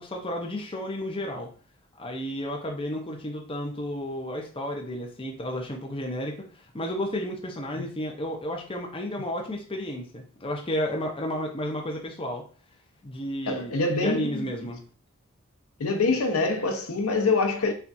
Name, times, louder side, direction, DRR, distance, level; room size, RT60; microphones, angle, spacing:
voice 1, 0.0-1.5 2.0-12.4 13.0-14.8, equal, 25° left, 0.7 m, -32 dB
voice 2, 13.5-14.5 15.8-17.7, left 3 dB, 90° left, 0.7 m, -25 dB
5.7 x 2.4 x 2.6 m
head